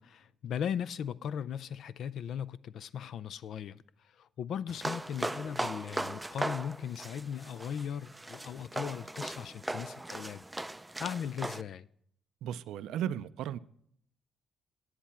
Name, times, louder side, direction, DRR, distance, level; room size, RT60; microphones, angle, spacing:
voice 1, 0.0-10.5 11.0-11.9, left 8 dB, 70° left, 0.3 m, -38 dB
sound 1, 4.7-11.6, right 1 dB, 10° right, 0.4 m, -38 dB
voice 2, 12.4-13.6, right 10 dB, 85° right, 0.4 m, -35 dB
10.5 x 9.4 x 4.3 m
cardioid pair, 90°, 0 cm